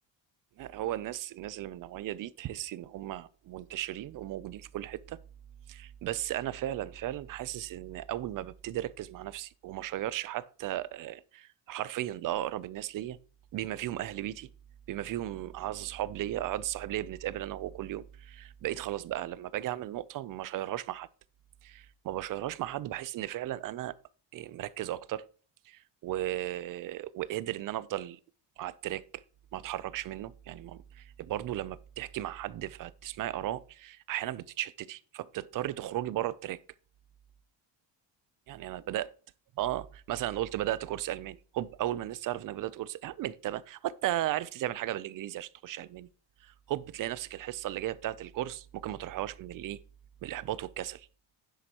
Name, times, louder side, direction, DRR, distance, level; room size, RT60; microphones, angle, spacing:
voice 1, 0.6-5.2 5.7-13.2 13.5-14.5 14.9-21.1 21.6-24.0 24.3-25.3 25.7-28.2 28.6-29.2 29.5-36.6 38.5-39.1 39.6-46.1 46.4-49.8 50.2-51.1, right 13 dB, 50° right, 0.5 m, -35 dB
10.5 x 7.8 x 2.9 m
cardioid pair, 170°, 45 cm